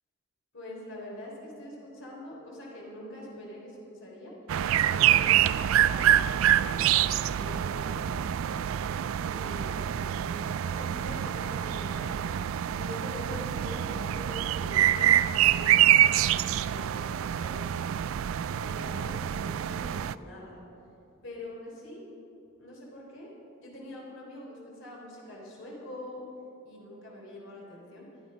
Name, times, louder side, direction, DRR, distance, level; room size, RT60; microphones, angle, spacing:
voice 1, 0.5-4.3 4.8-8.2 9.2-12.2 12.7-17.9 18.6-20.6 21.2-22.0 22.6-23.3 23.6-26.2 26.6-28.1, left 1 dB, 60° left, -3 dB, 3.5 m, -44 dB
sound 1, 4.5-20.1, right 11 dB, 75° right, 0.3 m, -26 dB
15.0 x 11.0 x 5.4 m, 2.9 s
head